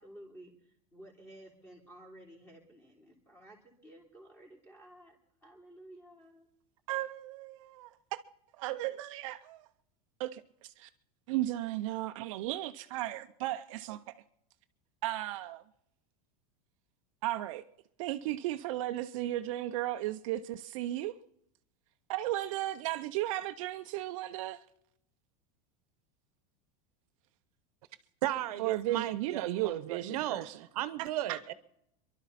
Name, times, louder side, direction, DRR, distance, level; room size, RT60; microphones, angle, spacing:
voice 1, 0.0-5.2 5.4-6.5, right 1 dB, 10° left, 3.3 m, -54 dB
voice 2, 6.9-8.2 8.6-9.7 10.2-10.9 11.3-14.0 15.0-15.6 17.2-17.6 18.0-21.1 22.1-24.6 28.6-30.6 31.0-31.4, right 15 dB, 55° right, 0.6 m, -35 dB
voice 3, 28.2-30.5 30.7-31.5, right 13 dB, 80° right, 1.0 m, -35 dB
27.5 x 12.0 x 4.2 m
supercardioid pair, 165°, 19 cm